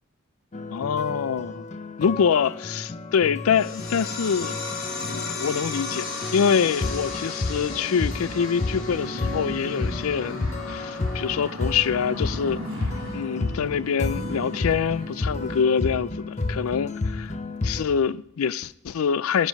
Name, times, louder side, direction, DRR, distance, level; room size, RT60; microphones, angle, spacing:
sound 1, 0.5-17.8, left 3 dB, 35° left, 0.6 m, -31 dB
voice 1, 0.7-1.7 2.0-4.6 5.0-17.3 17.6-19.5, left 7 dB, 90° left, 0.4 m, -25 dB
sound 2, 3.5-14.6, left 3 dB, 70° left, 2.5 m, -37 dB
sound 3, 6.0-15.6, right 1 dB, 70° right, 1.3 m, -39 dB
17.5 x 10.0 x 5.2 m
head